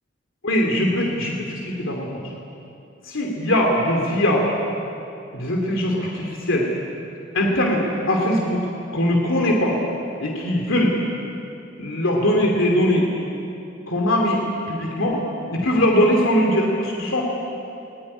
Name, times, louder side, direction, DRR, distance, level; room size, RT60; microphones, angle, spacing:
voice 1, 0.4-2.3 3.0-4.5 5.3-6.7 7.3-8.6 8.9-9.8 10.2-11.0 11.8-13.1 13.9-14.4 14.7-15.2 15.5-17.2, left 1 dB, 80° left, 0 dB, 2.9 m, -21 dB
21.0 x 18.0 x 10.0 m, 2.8 s
head